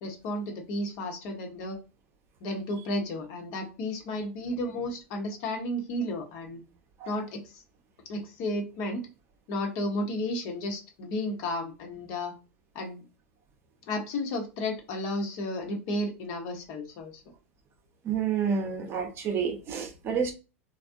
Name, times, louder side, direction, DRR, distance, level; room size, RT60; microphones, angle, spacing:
voice 1, 0.0-1.8 2.4-6.6 7.1-7.6 8.1-9.1 9.5-12.3 12.7-13.0 13.9-17.2, left 1 dB, 50° left, 1.1 m, -33 dB
voice 2, 18.0-20.3, right 6 dB, 35° right, 0.8 m, -29 dB
3.3 x 2.3 x 2.5 m
hypercardioid pair, 90°, 7 cm